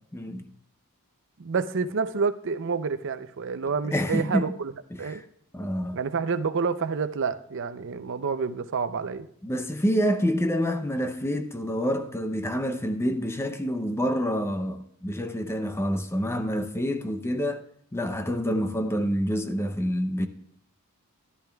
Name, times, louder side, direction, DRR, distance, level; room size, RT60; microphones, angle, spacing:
voice 1, 0.1-0.5 3.8-4.5 4.9-5.2 5.5-6.0 9.4-17.6 17.9-20.3, equal, 10° left, 0.6 m, -27 dB
voice 2, 1.4-4.7 5.0-5.2 5.9-9.3, right 5 dB, 60° right, 0.6 m, -28 dB
13.5 x 12.0 x 2.3 m
head